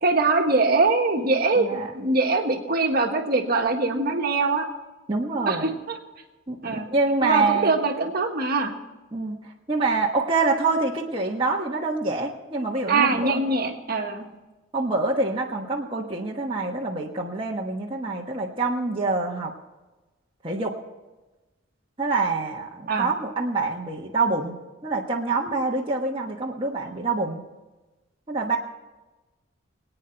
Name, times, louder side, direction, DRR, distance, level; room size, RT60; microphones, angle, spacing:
voice 1, 0.0-4.7 5.5-6.0 6.6-6.9 7.2-8.7 12.9-14.3 22.9-23.1, right 3 dB, 50° right, 3 dB, 1.5 m, -23 dB
voice 2, 1.6-1.9 5.1-5.7 6.5-7.8 9.1-9.4 9.7-13.4 14.7-19.5 20.4-20.8 22.0-24.6 24.8-27.4 28.3-28.6, right 3 dB, 25° right, -2 dB, 1.2 m, -26 dB
23.5 x 9.2 x 4.5 m, 1.1 s
head